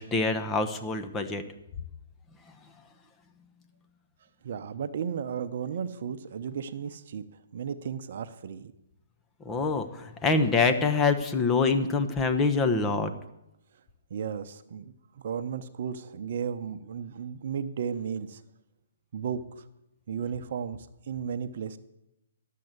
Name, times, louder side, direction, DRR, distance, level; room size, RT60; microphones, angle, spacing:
voice 1, 0.0-1.4 9.4-13.1, left 4 dB, 15° left, 8 dB, 1.0 m, -25 dB
voice 2, 4.4-7.2 7.5-8.7 14.1-18.4 19.1-19.6 20.1-21.8, right 7 dB, 55° right, 11 dB, 0.8 m, -34 dB
12.0 x 7.6 x 8.1 m, 0.86 s
hypercardioid pair, 140°, 0 cm